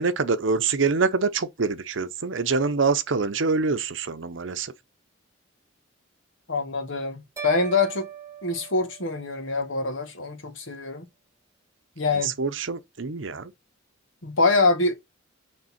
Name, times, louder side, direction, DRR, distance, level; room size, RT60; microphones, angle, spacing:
voice 1, 0.0-4.7 12.2-13.5, right 4 dB, 70° right, 0.7 m, -25 dB
voice 2, 6.5-8.1 8.4-11.0 12.0-12.3 14.2-14.9, left 3 dB, 75° left, 1.6 m, -24 dB
sound 1, 7.4-9.6, right 7 dB, 15° right, 1.1 m, -40 dB
6.3 x 4.0 x 4.3 m
head